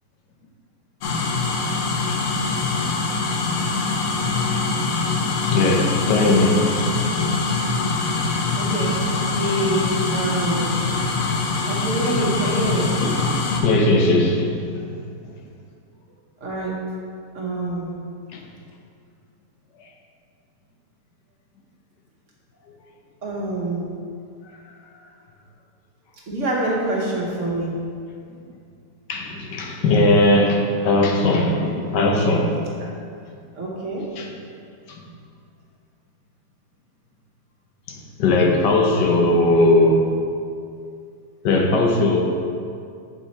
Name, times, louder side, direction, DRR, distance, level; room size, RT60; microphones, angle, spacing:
sound 1, 1.0-13.6, left 3 dB, 60° left, 1.0 m, -23 dB
voice 1, 3.6-3.9 5.5-6.6 13.0-13.3 13.6-14.9 18.3-18.4 29.1-32.5 34.2-34.3 34.9-35.0 37.9-40.0 41.4-42.2, left 2 dB, 85° left, 1 dB, 1.4 m, -19 dB
voice 2, 8.6-9.0 9.3-10.8 11.6-13.0 16.4-16.8 17.3-18.0 23.2-23.9 26.3-27.7 32.7-32.9 33.5-34.1, right 2 dB, 50° right, -4 dB, 1.3 m, -26 dB
6.9 x 4.7 x 4.2 m, 2.4 s
omnidirectional pair, 1.8 m